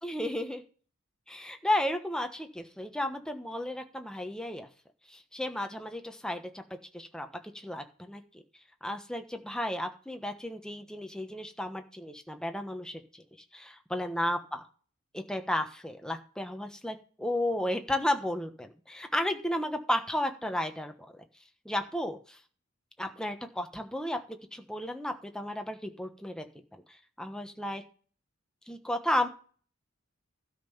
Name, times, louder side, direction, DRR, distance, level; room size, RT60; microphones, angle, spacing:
voice 1, 0.0-0.6 1.3-4.7 5.1-6.6 6.9-7.3 7.5-8.2 8.8-13.2 13.5-14.6 15.1-21.2 21.6-22.4 23.0-26.5 26.7-26.8 27.2-27.8 28.7-29.3, left 1 dB, 5° left, 5 dB, 1.2 m, -33 dB
12.5 x 5.7 x 7.1 m, 0.41 s
head